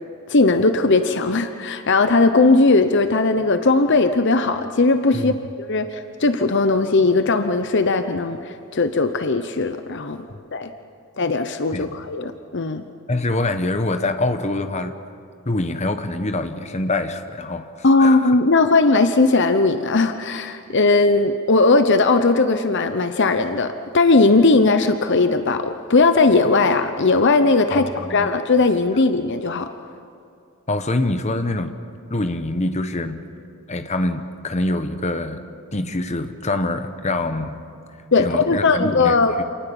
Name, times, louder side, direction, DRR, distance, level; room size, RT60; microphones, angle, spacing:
voice 1, 0.3-5.3 5.7-10.3 10.5-10.7 11.2-12.8 17.8-29.7 38.1-39.3, left 3 dB, 55° left, 9 dB, 0.9 m, -18 dB
voice 2, 13.1-15.0 15.5-17.7 18.0-18.3 27.7-28.3 30.7-31.7 32.1-33.2 33.7-35.4 35.7-37.6 38.2-39.4, left 2 dB, 30° left, 8 dB, 1.1 m, -25 dB
27.0 x 19.0 x 7.1 m, 2.4 s
head